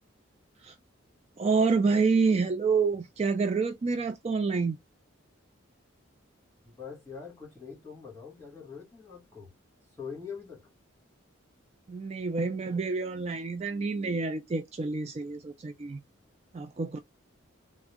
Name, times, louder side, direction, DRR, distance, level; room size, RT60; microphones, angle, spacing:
voice 1, 1.4-4.8 11.9-16.0 16.5-17.0, right 4 dB, 30° right, 0.3 m, -28 dB
voice 2, 6.6-9.5 10.0-10.7, left 6 dB, 15° left, 2.3 m, -43 dB
3.5 x 2.0 x 3.5 m
head